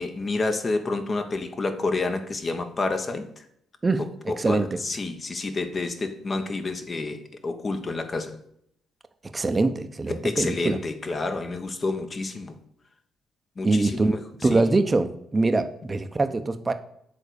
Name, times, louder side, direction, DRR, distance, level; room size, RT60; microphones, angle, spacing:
voice 1, 0.0-3.4 4.0-8.4 10.1-12.6 13.6-14.2 14.5-14.6, left 3 dB, 40° left, 7 dB, 1.2 m, -29 dB
voice 2, 3.8-4.8 9.2-10.8 13.6-16.7, right 3 dB, 25° right, 9 dB, 0.9 m, -24 dB
7.3 x 3.9 x 6.6 m, 0.72 s
supercardioid pair, 65°, 0 cm